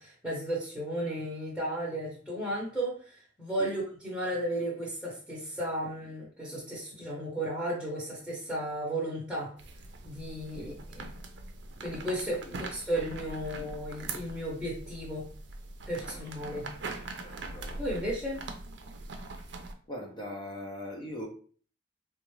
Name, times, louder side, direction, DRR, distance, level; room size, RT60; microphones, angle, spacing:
voice 1, 0.0-9.5 10.0-11.1 11.8-15.3 15.9-16.7 17.8-18.4, right 1 dB, 5° right, -6 dB, 0.8 m, -34 dB
sound 1, 9.6-19.7, right 3 dB, 65° right, 0.5 m, -42 dB
voice 2, 15.9-16.3 17.2-17.8 19.9-21.3, left 1 dB, 25° left, 0 dB, 0.6 m, -41 dB
3.6 x 2.2 x 3.0 m, 0.43 s
head